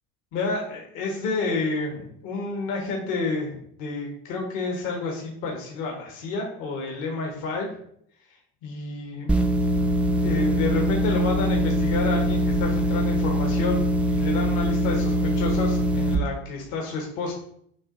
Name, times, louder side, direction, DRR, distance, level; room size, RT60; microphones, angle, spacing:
voice 1, 0.3-7.7 8.6-9.3 10.2-17.3, left 3 dB, 65° left, 0 dB, 1.3 m, -29 dB
sound 1, 9.3-16.1, equal, 5° right, 0.3 m, -23 dB
7.0 x 2.9 x 2.6 m, 0.67 s
supercardioid pair, 95°, 33 cm